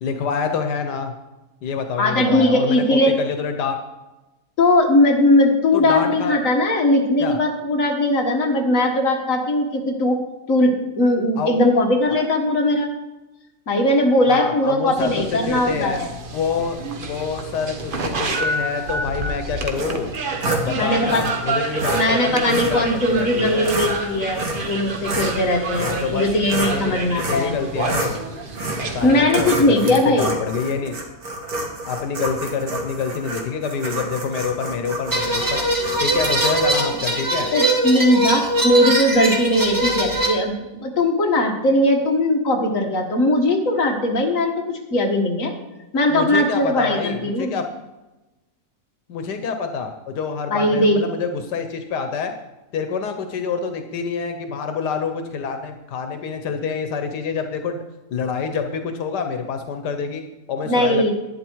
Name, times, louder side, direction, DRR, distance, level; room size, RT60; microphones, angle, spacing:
voice 1, 0.0-1.1 1.6-3.8 5.7-6.4 7.2-7.4 11.4-11.5 12.1-12.2 14.3-16.0 16.3-16.8 17.1-20.1 20.6-23.7 25.7-26.3 26.6-28.2 28.8-31.0 31.8-35.6 36.0-37.5 46.1-47.7 49.1-52.3 52.7-57.8 58.1-61.1, left 6 dB, 90° left, 7 dB, 1.5 m, -27 dB
voice 2, 2.0-3.2 4.6-10.2 10.5-12.9 13.7-16.1 20.8-21.3 21.9-27.6 29.0-30.4 37.5-40.5 40.8-45.5 45.9-47.6 50.5-51.0 60.7-61.1, left 1 dB, 55° left, 1 dB, 2.0 m, -19 dB
sound 1, 15.0-29.2, right 2 dB, 35° right, 1.1 m, -29 dB
sound 2, 19.8-20.7 21.1-21.3 21.8-22.0 22.5-22.8 23.4-23.9 24.4-24.7 25.0-26.8 27.2-27.5 27.8-28.2 28.5-28.9 29.3-36.7, right 2 dB, 65° right, 2.2 m, -28 dB
sound 3, 35.1-40.3, right 1 dB, 10° right, 1.6 m, -21 dB
11.5 x 9.7 x 4.6 m, 1.0 s
omnidirectional pair, 1.7 m